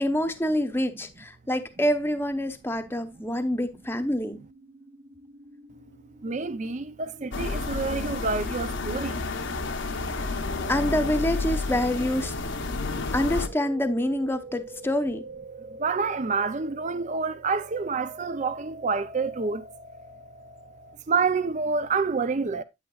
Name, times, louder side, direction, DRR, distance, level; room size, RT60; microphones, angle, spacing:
voice 1, 0.0-4.4 10.7-12.3 13.1-15.2, equal, 10° left, 0.8 m, -26 dB
sound 1, 2.5-21.0, right 2 dB, 55° right, 1.6 m, -46 dB
voice 2, 6.2-9.3 15.8-19.6 21.1-22.6, right 4 dB, 35° right, 0.5 m, -28 dB
sound 2, 7.3-13.5, left 3 dB, 70° left, 0.9 m, -30 dB
9.0 x 8.8 x 2.4 m
head